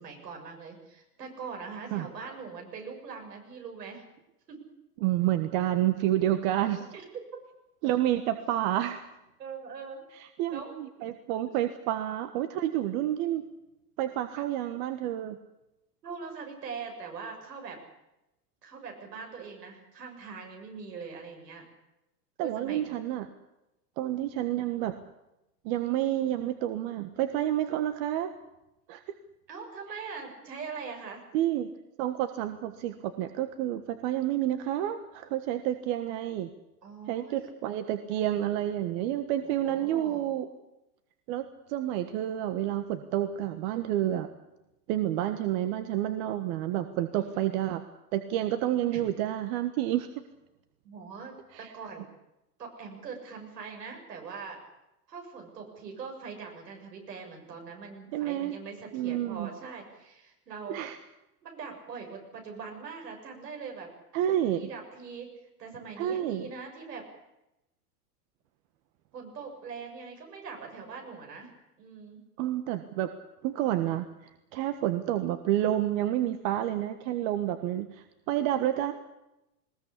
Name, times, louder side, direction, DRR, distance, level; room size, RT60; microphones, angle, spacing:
voice 1, 0.0-4.0 4.5-4.6 6.4-7.0 9.4-10.0 10.5-10.7 16.0-17.8 18.6-21.7 22.4-22.9 29.5-31.2 36.8-37.4 39.4-40.2 47.1-47.5 48.9-49.1 50.8-52.1 52.6-54.6 55.1-60.9 61.4-63.9 64.5-65.3 65.6-67.0 69.1-71.5 71.8-72.2, right 5 dB, 85° right, 2 dB, 7.2 m, -42 dB
voice 2, 5.0-6.9 7.8-9.0 10.1-13.4 14.0-15.4 22.4-23.3 24.0-24.9 25.6-28.3 28.9-29.0 31.3-31.7 32.0-36.5 37.1-40.5 41.3-44.3 44.9-47.8 48.1-50.1 51.5-51.7 58.1-58.6 58.9-59.5 60.7-61.0 64.1-64.6 66.0-66.5 72.4-73.1 73.4-74.1 74.5-78.9, right 12 dB, 55° right, 9 dB, 1.6 m, -29 dB
20.5 x 19.0 x 8.5 m, 0.91 s
hypercardioid pair, 105°, 47 cm